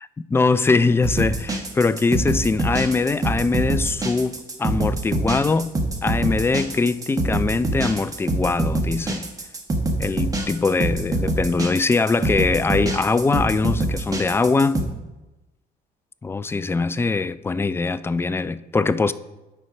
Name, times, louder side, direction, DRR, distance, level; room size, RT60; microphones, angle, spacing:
voice 1, 0.0-5.7 6.0-9.3 10.0-14.8 16.2-19.1, left 4 dB, 15° left, 0.3 m, -22 dB
sound 1, 1.0-14.8, right 2 dB, 20° right, 1.2 m, -24 dB
9.0 x 4.5 x 5.8 m
cardioid pair, 110°, 17 cm